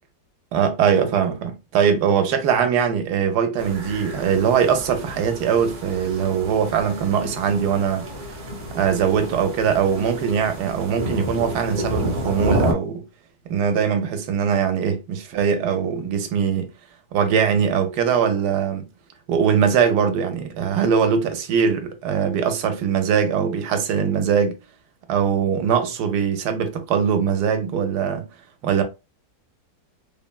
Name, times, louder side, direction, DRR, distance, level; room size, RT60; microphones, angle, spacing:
voice 1, 0.5-8.1 8.3-8.4 8.7-13.0 13.5-16.7 17.1-18.8 19.3-24.6 25.1-28.3 28.6-28.8, right 7 dB, 75° right, 1.1 m, -21 dB
sound 1, 3.6-12.7, equal, 55° right, 0.5 m, -30 dB
3.3 x 2.1 x 2.2 m
omnidirectional pair, 1.8 m